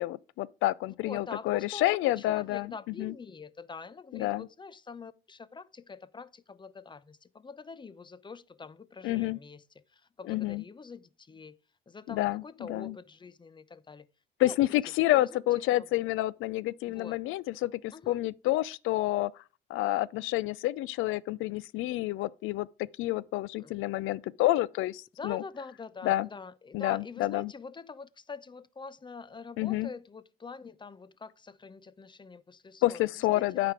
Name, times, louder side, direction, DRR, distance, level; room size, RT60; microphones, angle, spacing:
voice 1, 0.0-2.7 3.0-3.1 4.1-4.5 9.0-9.4 10.3-10.6 12.1-12.4 12.7-12.9 14.4-19.3 19.7-25.4 26.0-26.3 26.7-27.5 29.6-29.9 32.8-33.7, left 16 dB, 90° left, 0.4 m, -29 dB
voice 2, 1.0-11.6 11.9-14.1 14.4-14.8 15.2-16.1 16.9-17.2 17.9-18.2 23.6-23.8 25.2-33.7, left 4 dB, 25° left, 0.5 m, -45 dB
9.1 x 5.0 x 5.0 m
cardioid pair, 90°, 20 cm